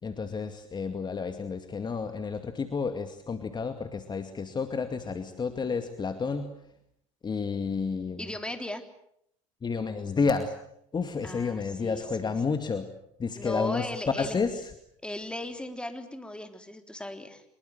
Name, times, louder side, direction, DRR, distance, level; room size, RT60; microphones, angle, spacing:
voice 1, 0.0-6.5 7.2-8.4 9.6-10.5 10.9-12.9 13.2-14.7, left 5 dB, 25° left, 7 dB, 2.3 m, -30 dB
voice 2, 8.2-8.8 11.2-12.3 13.3-14.4 15.0-17.4, left 1 dB, 5° left, 6 dB, 3.6 m, -37 dB
25.0 x 22.5 x 7.9 m, 0.72 s
hypercardioid pair, 75°, 17 cm